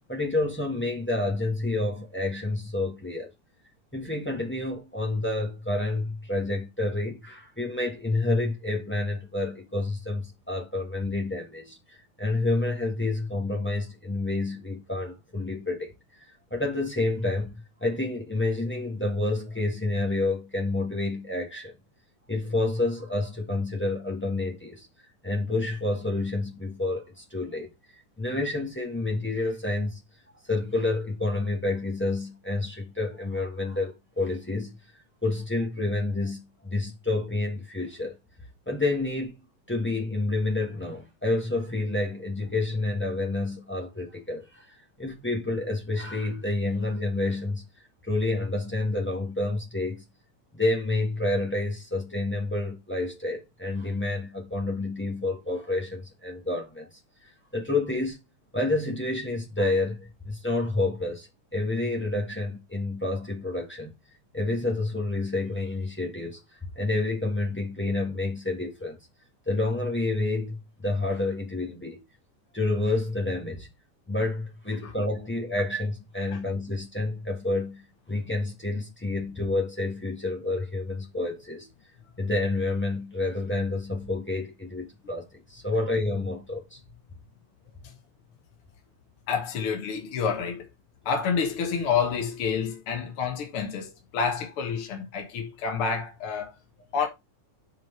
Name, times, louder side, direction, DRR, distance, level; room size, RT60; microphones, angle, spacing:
voice 1, 0.1-3.3 3.9-15.9 16.5-17.5 17.8-21.7 22.3-24.9 25.2-27.7 28.2-30.0 30.4-34.8 35.2-38.2 38.7-39.3 39.7-47.6 48.0-50.0 50.5-56.9 57.5-58.2 58.5-63.9 64.3-66.4 66.7-69.0 69.5-72.0 72.5-73.7 74.1-81.7 82.2-86.8, left 2 dB, 15° left, 0.3 m, -29 dB
voice 2, 89.3-90.7 91.1-96.6 96.9-97.1, left 6 dB, 55° left, 2.0 m, -28 dB
6.1 x 5.7 x 4.5 m
omnidirectional pair, 3.3 m